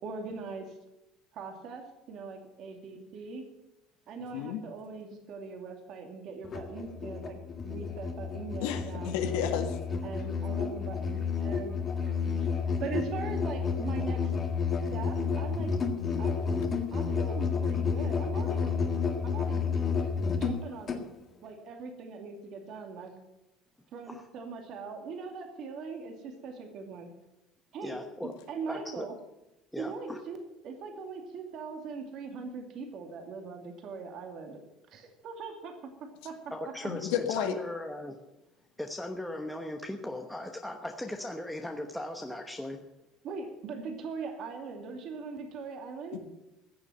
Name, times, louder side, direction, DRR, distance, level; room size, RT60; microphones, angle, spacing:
voice 1, 0.0-0.7 1.3-3.5 4.1-9.1 10.0-12.3 12.8-14.3 14.9-15.7 16.2-16.6 16.9-18.8 19.2-19.7 20.4-21.1 21.4-23.2 23.9-27.1 27.7-29.1 29.8-34.6 34.9-36.3 43.2-46.2, right 4 dB, 50° right, 4 dB, 2.5 m, -41 dB
Musical instrument, 6.4-21.1, left 5 dB, 30° left, 1.7 m, -31 dB
voice 2, 8.6-9.8 36.9-37.5 46.1-46.2, left 8 dB, 90° left, 5 dB, 1.8 m, -31 dB
voice 3, 27.8-28.3 28.7-29.1 29.7-30.2 36.5-38.2 38.8-42.8, left 1 dB, 5° left, 3 dB, 1.1 m, -38 dB
15.0 x 7.1 x 9.1 m, 0.96 s
cardioid pair, 140°, 0 cm